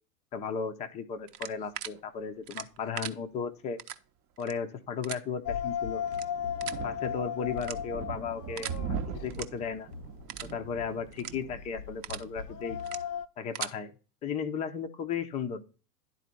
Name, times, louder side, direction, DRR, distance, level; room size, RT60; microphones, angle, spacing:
voice 1, 0.3-3.8 4.4-6.0 6.8-9.9 10.4-12.8 13.4-13.9 14.2-15.7, left 6 dB, 15° left, 6 dB, 0.5 m, -35 dB
sound 1, 1.3-1.9 2.5-3.1 3.8-4.0 4.4-4.5 5.0-5.2 6.1-6.2 6.6-6.8 7.6-8.0 8.6-8.8 9.3-9.4 9.8-9.9 10.3-10.5 11.1-11.3 11.8-12.2 12.8-13.0 13.4-13.7, right 11 dB, 70° right, 0.8 m, -38 dB
sound 2, 5.4-13.3, left 8 dB, 80° left, 0.8 m, -37 dB
sound 3, 5.5-13.0, right 7 dB, 30° right, 0.8 m, -42 dB
10.5 x 4.1 x 4.3 m, 0.35 s
hypercardioid pair, 105°, 50 cm